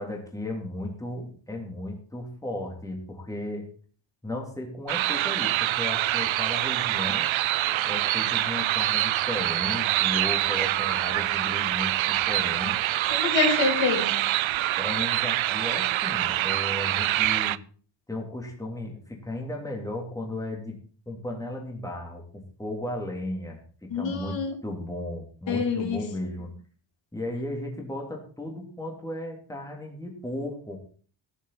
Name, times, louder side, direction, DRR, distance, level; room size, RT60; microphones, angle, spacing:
voice 1, 0.0-3.7 4.2-7.3 7.9-12.8 14.8-17.6 18.1-20.7 21.1-26.5 27.1-30.8, left 1 dB, 5° left, 0 dB, 3.3 m, -35 dB
sound 1, 4.9-17.6, right 15 dB, 90° right, 0.7 m, -25 dB
voice 2, 13.1-14.1 23.9-24.5 25.5-26.0, left 4 dB, 70° left, 3 dB, 3.5 m, -26 dB
16.0 x 11.0 x 4.2 m, 0.42 s
wide cardioid pair, 180°, 45 cm